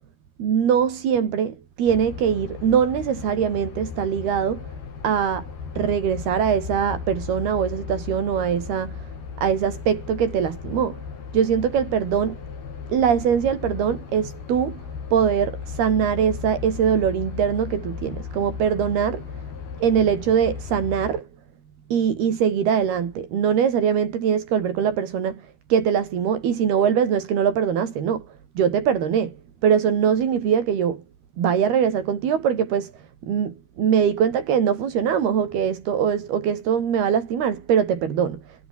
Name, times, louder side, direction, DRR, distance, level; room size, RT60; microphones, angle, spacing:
voice 1, 0.4-4.7 5.0-5.5 5.8-9.1 9.4-11.0 11.3-12.4 12.9-14.8 15.1-19.3 19.8-21.3 21.9-28.3 28.6-29.4 29.6-31.0 31.4-32.9 33.2-38.7, right 8 dB, 85° right, 5.2 m, -22 dB
sound 1, 1.9-21.2, left 6 dB, 80° left, 6.6 m, -36 dB
omnidirectional pair, 4.4 m